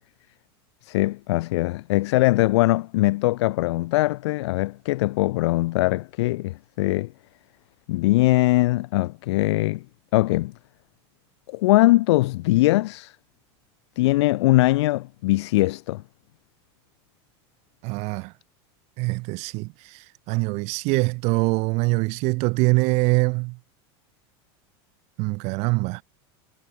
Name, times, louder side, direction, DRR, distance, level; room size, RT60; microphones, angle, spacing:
voice 1, 0.8-7.1 7.9-9.8 10.1-10.5 11.5-13.2 14.0-16.0, left 19 dB, 80° left, 0.7 m, -21 dB
voice 2, 17.8-18.3 19.0-23.6 25.2-26.0, right 27 dB, 50° right, 1.7 m, -24 dB
supercardioid pair, 155°, 14 cm